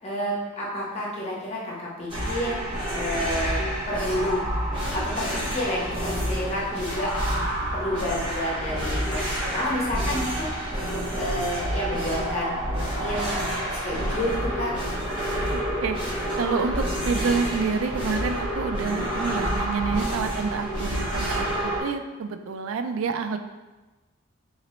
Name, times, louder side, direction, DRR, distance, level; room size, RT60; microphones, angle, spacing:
voice 1, 0.0-2.5 2.8-3.6 3.9-4.4 4.9-7.1 7.7-10.5 10.8-13.2 13.8-14.7, left 1 dB, 30° left, -5 dB, 0.9 m, -30 dB
sound 1, 2.1-21.8, equal, 25° right, 1.1 m, -28 dB
voice 2, 15.5-16.0 16.4-23.4, right 5 dB, 80° right, 8 dB, 0.3 m, -28 dB
4.0 x 3.0 x 3.0 m, 1.2 s
head